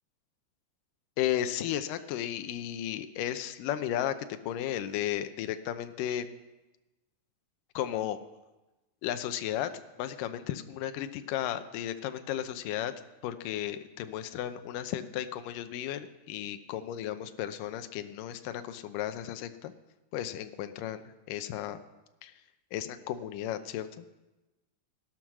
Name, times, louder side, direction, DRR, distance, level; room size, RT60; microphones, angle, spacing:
voice 1, 1.2-6.3 7.7-8.2 9.0-9.7 10.0-12.9 13.2-19.7 20.1-21.0 21.3-21.8 22.2-22.3 22.7-24.1, left 11 dB, 75° left, 9 dB, 2.3 m, -34 dB
17.5 x 12.0 x 6.2 m, 1.1 s
omnidirectional pair, 4.3 m